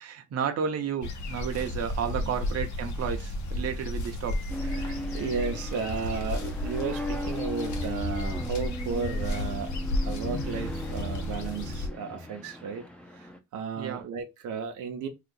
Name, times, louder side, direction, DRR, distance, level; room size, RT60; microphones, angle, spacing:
voice 1, 0.0-4.4 13.8-14.0, right 7 dB, 55° right, 0.8 m, -32 dB
sound 1, 1.0-11.9, left 1 dB, 70° left, 1.0 m, -33 dB
sound 2, 4.5-13.4, equal, 5° left, 0.7 m, -38 dB
voice 2, 4.7-9.8 10.0-13.3 13.5-15.1, right 5 dB, 85° right, 0.8 m, -34 dB
2.8 x 2.5 x 3.9 m
cardioid pair, 90°, 30 cm